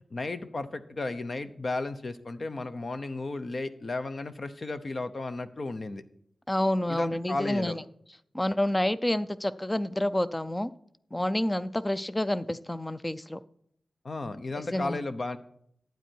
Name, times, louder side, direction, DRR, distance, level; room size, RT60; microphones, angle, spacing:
voice 1, 0.1-6.0 6.9-7.8 14.0-15.4, left 2 dB, 45° left, 10 dB, 0.8 m, -34 dB
voice 2, 6.5-7.8 8.3-10.7 11.1-13.4 14.7-15.0, left 1 dB, 15° left, 14 dB, 0.5 m, -28 dB
12.0 x 9.1 x 4.6 m, 0.69 s
wide cardioid pair, 95°, 0 cm